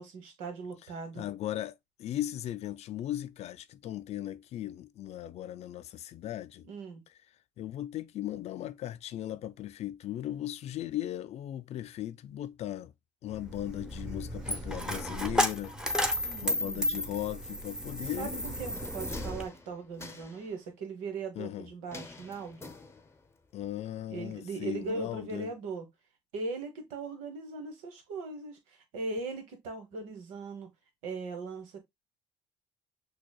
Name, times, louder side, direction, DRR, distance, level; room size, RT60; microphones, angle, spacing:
voice 1, 0.0-1.3 6.7-7.0 14.5-14.6 16.2-17.1 18.2-22.7 24.1-25.9 26.3-30.7 31.0-31.8, right 3 dB, 80° right, 1.2 m, -39 dB
voice 2, 1.2-6.6 7.6-12.9 13.2-15.8 16.0-18.4 21.4-21.7 23.5-25.5, left 12 dB, 55° left, 0.4 m, -37 dB
Coin (dropping), 13.3-19.4, equal, 5° right, 0.9 m, -33 dB
sound 1, 18.4-20.5 21.9-23.3 23.6-23.7, left 3 dB, 20° left, 0.7 m, -47 dB
6.1 x 2.3 x 2.3 m
supercardioid pair, 65°, 13 cm